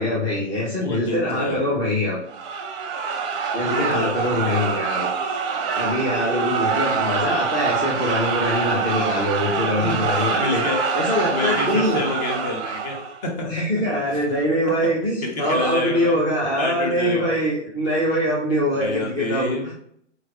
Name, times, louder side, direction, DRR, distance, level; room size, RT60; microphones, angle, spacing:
voice 1, 0.0-2.2 3.5-5.4 5.7-12.0 13.4-19.7, equal, 10° left, -6 dB, 0.6 m, -23 dB
voice 2, 0.8-1.8 3.6-4.1 9.8-13.0 13.2-13.6 15.2-16.2 16.6-17.3 18.7-19.7, left 2 dB, 35° left, -1 dB, 1.3 m, -28 dB
sound 1, 2.3-13.2, right 5 dB, 25° right, 0.7 m, -25 dB
4.0 x 3.2 x 3.5 m, 0.67 s
hypercardioid pair, 135°, 36 cm